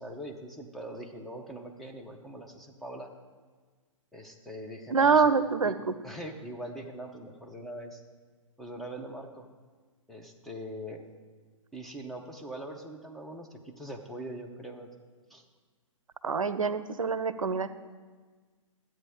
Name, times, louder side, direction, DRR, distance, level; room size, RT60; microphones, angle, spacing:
voice 1, 0.0-3.1 4.1-5.8 6.0-8.0 8.6-9.4 10.1-11.0 11.7-14.9 15.3-15.4, right 1 dB, ahead, 1 dB, 0.8 m, -42 dB
voice 2, 4.9-5.9 16.2-17.7, right 5 dB, 75° right, 13 dB, 0.6 m, -25 dB
13.5 x 8.6 x 3.6 m, 1.4 s
figure-of-eight pair, 120°, 17 cm